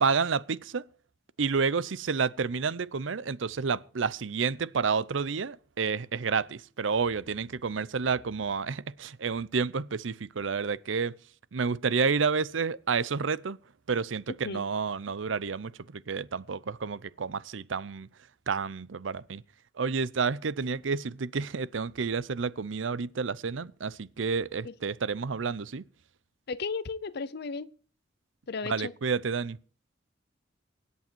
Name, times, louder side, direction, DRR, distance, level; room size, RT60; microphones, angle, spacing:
voice 1, 0.0-0.8 1.4-11.1 11.5-13.6 13.9-18.1 18.5-19.4 19.8-25.8 28.7-29.6, right 5 dB, 90° right, 0.6 m, -30 dB
voice 2, 26.5-27.7 28.5-28.9, left 4 dB, 60° left, 0.6 m, -34 dB
24.5 x 8.5 x 4.5 m
head